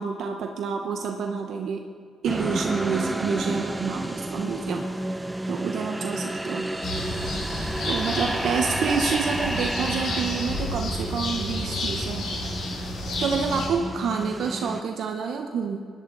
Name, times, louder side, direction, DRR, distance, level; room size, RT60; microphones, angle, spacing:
voice 1, 0.0-1.8 2.2-5.2 5.5-6.7 7.9-12.3 13.2-15.8, right 6 dB, 70° right, 3 dB, 0.8 m, -28 dB
sound 1, 2.3-14.8, right 1 dB, 10° right, 0.5 m, -31 dB
sound 2, 6.8-13.7, left 1 dB, 65° left, 4.0 m, -31 dB
17.5 x 11.0 x 3.9 m, 2.2 s
cardioid pair, 90°, 0 cm